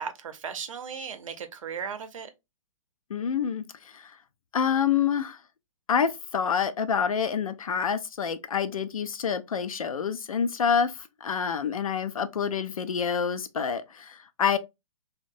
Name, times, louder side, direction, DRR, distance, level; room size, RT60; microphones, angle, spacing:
voice 1, 0.0-2.3, right 6 dB, 70° right, 0.6 m, -36 dB
voice 2, 3.1-4.1 4.5-5.4 5.9-14.6, left 7 dB, 80° left, 0.4 m, -27 dB
3.0 x 2.1 x 2.6 m
figure-of-eight pair, 120°, 18 cm